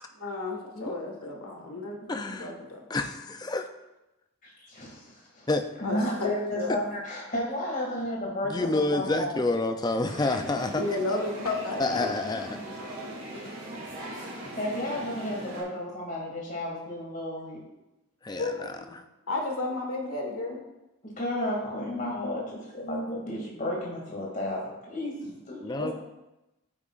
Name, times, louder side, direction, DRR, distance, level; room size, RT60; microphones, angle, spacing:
voice 1, 0.1-2.8 5.8-6.3 6.5-6.7 10.8-12.1 12.4-13.0 18.4-18.7 19.3-20.6 25.8-25.9, left 2 dB, 85° left, 1 dB, 1.6 m, -33 dB
voice 2, 2.1-2.5 2.9-3.7 5.5-5.6 8.5-10.8 11.8-12.6 18.2-19.0 25.6-25.9, left 2 dB, 20° left, 7 dB, 0.4 m, -29 dB
voice 3, 4.7-5.5 5.8-9.4 14.0-17.6 21.0-22.4 22.7-25.8, left 1 dB, 40° left, -3 dB, 2.4 m, -32 dB
sound 1, 10.0-15.6, right 1 dB, 45° right, 2.7 m, -40 dB
8.8 x 8.5 x 2.5 m, 0.98 s
head